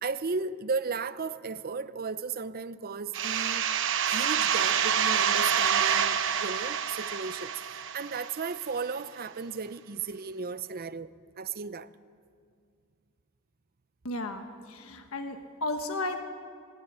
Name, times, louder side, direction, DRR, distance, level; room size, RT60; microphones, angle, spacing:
voice 1, 0.0-3.7 4.1-11.1 11.4-11.9, right 4 dB, 45° right, 0.7 m, -35 dB
sound 1, 3.1-8.6, right 8 dB, 60° right, 1.0 m, -27 dB
voice 2, 14.0-16.2, left 2 dB, 75° left, 1.4 m, -34 dB
19.5 x 17.5 x 9.9 m
head